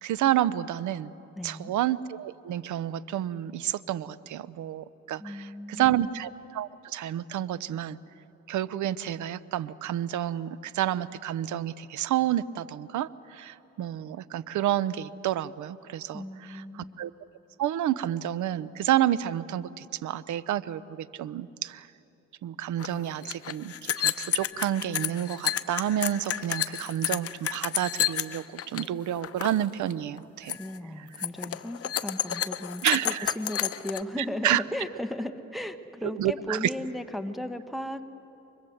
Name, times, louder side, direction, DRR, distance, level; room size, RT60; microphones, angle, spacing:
voice 1, 0.0-1.1 1.4-8.0 8.5-16.2 17.0-17.1 17.6-21.9 22.4-30.6 32.8-33.3 34.4-34.6 36.1-36.6, right 12 dB, 75° right, 17 dB, 0.8 m, -29 dB
voice 2, 1.3-1.7 5.2-6.1 16.1-17.0 30.5-38.0, left 1 dB, ahead, 6 dB, 1.2 m, -36 dB
sound 1, 22.8-22.9 23.1-28.9 29.1-29.6 29.9-30.2 30.5-30.8 31.1-34.0, left 10 dB, 50° left, 0.9 m, -30 dB
29.0 x 24.0 x 7.9 m, 3.0 s
cardioid pair, 90°, 30 cm